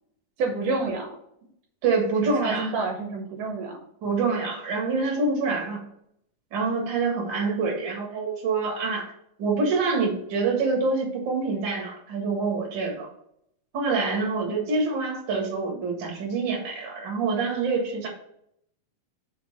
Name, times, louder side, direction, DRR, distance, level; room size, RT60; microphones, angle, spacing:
voice 1, 0.4-1.1 2.2-3.8, right 3 dB, 75° right, 2 dB, 2.2 m, -28 dB
voice 2, 1.8-2.7 4.0-5.8 6.5-9.1 9.4-13.1 13.7-18.1, right 4 dB, 45° right, 1 dB, 1.9 m, -26 dB
5.7 x 4.4 x 5.4 m, 0.74 s
omnidirectional pair, 4.0 m